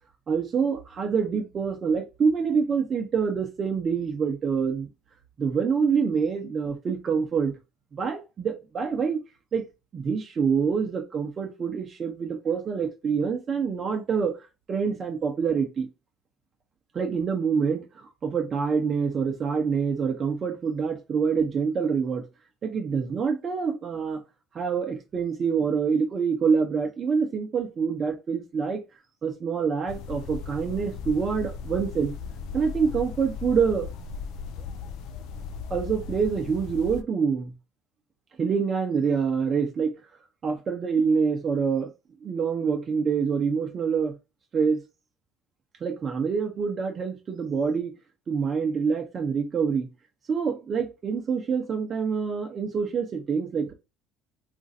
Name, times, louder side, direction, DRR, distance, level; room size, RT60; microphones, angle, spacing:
voice 1, 0.3-4.9 5.4-7.5 7.9-9.2 9.5-9.7 9.9-14.4 14.7-15.9 16.9-22.3 22.6-24.2 24.5-28.8 29.2-32.1 32.5-33.9 35.7-37.5 38.4-39.9 40.4-41.9 42.2-44.1 44.5-44.8 45.8-47.9 48.3-49.9 50.3-53.7, right 6 dB, 40° right, 0.7 m, -26 dB
sound 1, 29.9-37.0, left 5 dB, 70° left, 0.4 m, -37 dB
3.0 x 2.5 x 2.7 m
supercardioid pair, 75°, 0 cm